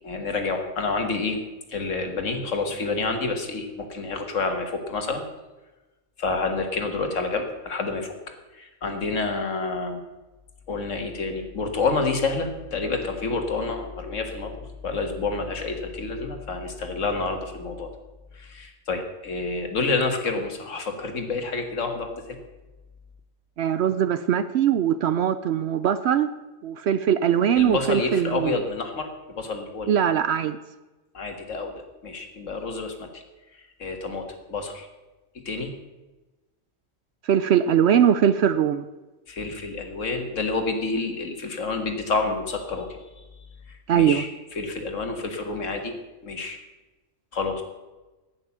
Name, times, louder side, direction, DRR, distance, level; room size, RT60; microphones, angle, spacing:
voice 1, 0.0-1.4 1.7-5.2 6.2-8.1 8.5-10.0 10.7-17.9 18.3-22.4 27.6-29.9 31.1-31.7 32.0-33.2 33.5-34.9 35.5-35.7 39.3-43.2 43.7-44.3 44.6-46.0 46.2-46.6 47.3-47.6, left 3 dB, 70° left, 5 dB, 1.9 m, -28 dB
voice 2, 23.6-26.3 26.6-28.6 29.9-30.6 37.2-38.9 43.9-44.2, right 9 dB, 65° right, 13 dB, 0.7 m, -21 dB
10.5 x 9.0 x 7.1 m, 1.1 s
omnidirectional pair, 1.4 m